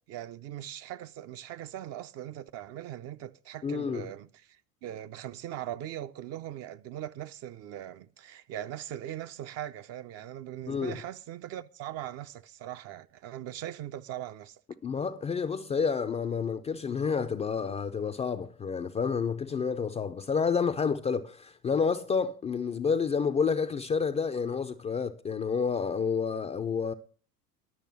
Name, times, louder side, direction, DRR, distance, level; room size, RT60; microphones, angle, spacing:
voice 1, 0.0-14.6, right 12 dB, 35° right, 0.5 m, -40 dB
voice 2, 3.6-4.1 10.7-11.0 14.8-26.9, left 5 dB, 15° left, 0.4 m, -29 dB
11.0 x 6.6 x 7.5 m
figure-of-eight pair, 80°, 46 cm